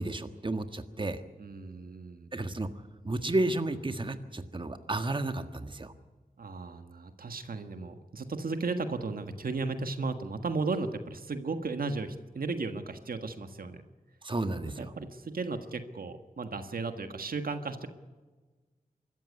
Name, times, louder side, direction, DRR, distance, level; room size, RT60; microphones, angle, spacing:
voice 1, 0.0-1.2 2.3-5.9 14.2-14.9, right 2 dB, 35° right, 8 dB, 1.6 m, -32 dB
voice 2, 1.4-2.3 6.4-13.8 14.6-17.9, right 3 dB, 85° right, 7 dB, 1.7 m, -35 dB
24.5 x 14.0 x 9.6 m, 1.3 s
wide cardioid pair, 75°, 15 cm